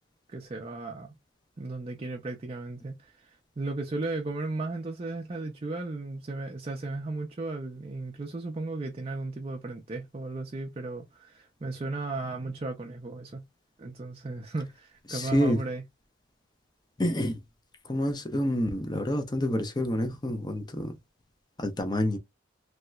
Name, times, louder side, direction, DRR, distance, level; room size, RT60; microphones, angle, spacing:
voice 1, 0.3-1.1 1.6-13.4 13.8-15.8, right 2 dB, 30° right, 0.4 m, -35 dB
voice 2, 15.1-15.6 17.0-17.4 17.8-20.9 21.6-22.2, left 1 dB, 20° left, 0.6 m, -28 dB
3.1 x 2.8 x 2.2 m
head